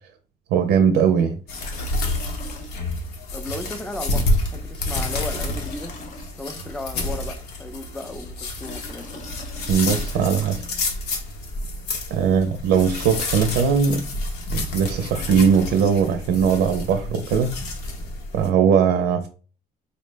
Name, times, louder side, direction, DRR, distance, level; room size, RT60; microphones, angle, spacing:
voice 1, 0.5-1.4 9.7-10.7 12.1-14.1 14.5-17.5 18.3-19.3, right 7 dB, 80° right, 0.5 m, -20 dB
sound 1, 1.5-18.5, left 2 dB, 75° left, 0.8 m, -29 dB
Liquid, 1.5-3.1 3.4-3.5 4.8-6.7 8.4-11.0 12.6-12.7 12.9-13.8 14.9-16.0, left 2 dB, 50° left, 0.9 m, -42 dB
voice 2, 3.3-6.0 6.4-9.2 12.3-12.4, left 1 dB, 5° left, 0.4 m, -35 dB
4.2 x 2.0 x 3.2 m
cardioid pair, 110°, 17 cm